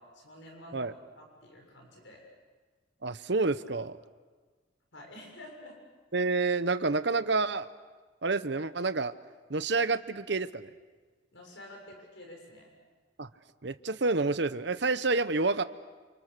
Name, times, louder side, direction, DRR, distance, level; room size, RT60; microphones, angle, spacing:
voice 1, 0.0-2.2 4.9-5.8 11.3-12.8, left 1 dB, 70° left, 1 dB, 6.6 m, -49 dB
voice 2, 3.0-4.0 6.1-7.7 8.2-9.1 9.5-10.7 13.2-13.3 13.6-15.6, right 3 dB, 60° right, 13 dB, 0.9 m, -28 dB
29.0 x 29.0 x 6.8 m, 1.4 s
head